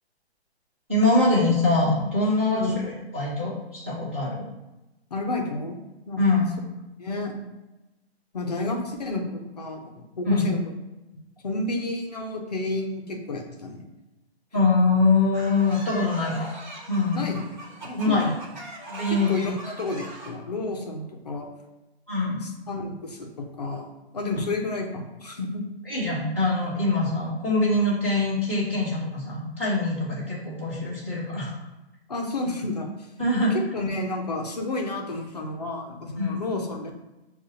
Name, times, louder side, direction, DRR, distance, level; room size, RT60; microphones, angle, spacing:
voice 1, 0.9-2.7 3.1-4.5 6.2-6.4 10.3-10.5 14.5-16.5 16.9-17.3 18.0-18.3 18.8-19.5 22.1-22.4 25.9-31.5 33.2-33.5 36.2-36.4, left 2 dB, 15° right, -10 dB, 0.5 m, -23 dB
voice 2, 5.1-6.4 7.0-7.4 8.3-10.6 11.4-13.8 17.1-17.4 17.8-18.3 19.1-21.5 22.4-25.6 32.1-33.1 33.5-36.9, left 2 dB, 40° left, 2 dB, 0.5 m, -31 dB
sound 1, 15.3-20.3, right 1 dB, 45° right, 1.0 m, -41 dB
6.5 x 2.3 x 2.7 m, 1.0 s
hypercardioid pair, 170°, 32 cm